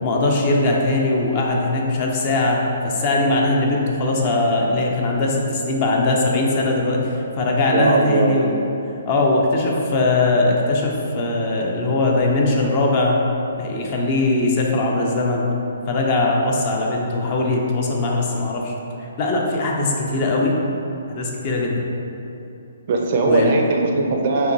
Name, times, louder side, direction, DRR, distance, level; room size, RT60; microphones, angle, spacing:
voice 1, 0.0-8.5 9.1-13.2 13.6-15.4 15.9-18.7 19.0-20.6 21.1-21.9 23.3-23.5, left 2 dB, 30° left, -1 dB, 0.4 m, -20 dB
voice 2, 7.7-8.4 22.9-24.5, right 3 dB, 40° right, 1 dB, 0.4 m, -19 dB
5.4 x 2.6 x 2.7 m, 2.8 s
hypercardioid pair, 165°, 0 cm